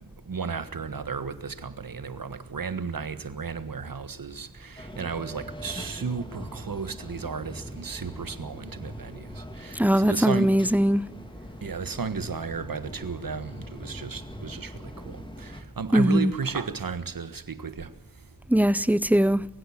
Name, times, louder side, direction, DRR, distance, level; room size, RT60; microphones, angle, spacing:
voice 1, 0.3-9.3 9.6-10.5 11.6-14.7 15.0-17.9, right 5 dB, 75° right, 1.5 m, -34 dB
sound 1, 4.8-15.6, equal, 15° left, 2.9 m, -42 dB
voice 2, 9.8-11.0 15.9-16.3 18.5-19.4, equal, 5° right, 0.7 m, -20 dB
22.5 x 16.0 x 7.3 m
cardioid pair, 40°, 34 cm